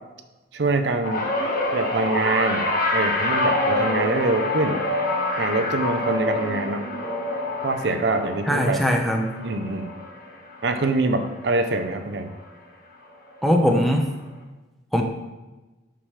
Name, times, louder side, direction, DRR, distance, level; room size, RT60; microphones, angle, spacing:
voice 1, 0.5-1.3 1.7-4.8 5.4-6.8 7.6-8.8 9.4-9.9 10.6-12.3, right 2 dB, 60° right, 7 dB, 0.6 m, -24 dB
sound 1, 1.0-11.5 11.8-12.2 13.4-13.5, left 2 dB, 45° left, 1.3 m, -26 dB
voice 2, 8.5-9.3 13.4-14.1 14.9-15.0, equal, ahead, 1 dB, 0.7 m, -20 dB
9.4 x 6.0 x 3.2 m, 1.1 s
head